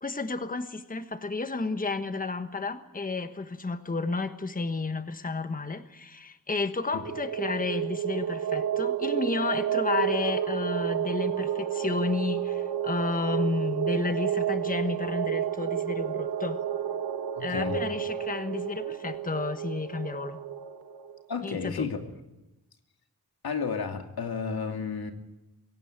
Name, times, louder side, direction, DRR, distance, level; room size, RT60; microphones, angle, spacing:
voice 1, 0.0-16.6 17.4-20.4 21.4-21.9, left 3 dB, 25° left, 9 dB, 1.3 m, -31 dB
sound 1, 6.8-21.2, right 10 dB, 80° right, 1.3 m, -31 dB
voice 2, 17.3-17.8 21.3-22.1 23.4-25.1, left 5 dB, 85° left, 4 dB, 2.7 m, -32 dB
23.5 x 17.0 x 9.6 m, 0.96 s
wide cardioid pair, 115°, 36 cm